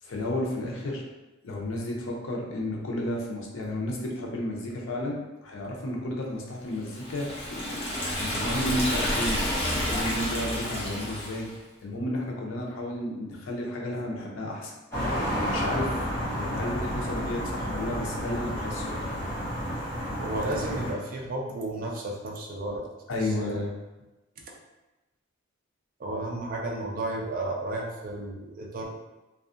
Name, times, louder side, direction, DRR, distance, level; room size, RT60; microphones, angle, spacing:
voice 1, 0.0-1.1 1.4-11.5 11.8-14.7 15.4-19.0 23.1-23.7, left 1 dB, 75° left, -1 dB, 0.6 m, -32 dB
Liquid, 6.9-11.5, left 1 dB, 30° left, 0.7 m, -30 dB
sound 1, 14.9-20.9, equal, 15° left, 1.0 m, -31 dB
voice 2, 20.2-22.8 23.4-23.6 26.0-28.8, right 2 dB, 45° right, -1 dB, 0.4 m, -33 dB
2.6 x 2.3 x 2.5 m, 1.1 s
head